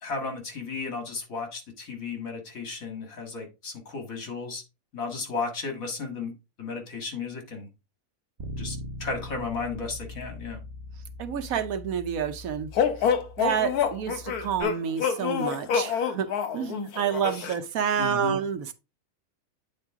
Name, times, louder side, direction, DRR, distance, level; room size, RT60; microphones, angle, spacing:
voice 1, 0.0-4.6 4.9-7.7 8.6-10.6 17.3-17.5 18.0-18.4, left 4 dB, 65° left, 2.2 m, -34 dB
Bass guitar, 8.4-14.6, left 1 dB, 35° right, 1.3 m, -41 dB
voice 2, 11.2-12.7 13.4-18.7, right 8 dB, 70° right, 1.2 m, -29 dB
sound 1, 12.8-17.6, left 7 dB, 80° left, 1.4 m, -27 dB
8.8 x 4.3 x 3.6 m
omnidirectional pair, 1.6 m